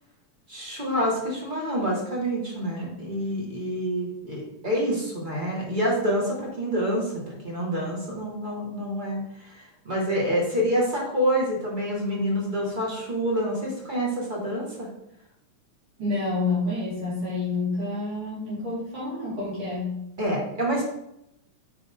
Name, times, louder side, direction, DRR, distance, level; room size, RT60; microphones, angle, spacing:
voice 1, 0.5-14.9 20.2-20.8, equal, 20° right, -2 dB, 1.3 m, -27 dB
voice 2, 16.0-20.0, left 3 dB, 50° right, -9 dB, 4.0 m, -28 dB
9.1 x 5.4 x 3.7 m, 0.82 s
omnidirectional pair, 3.4 m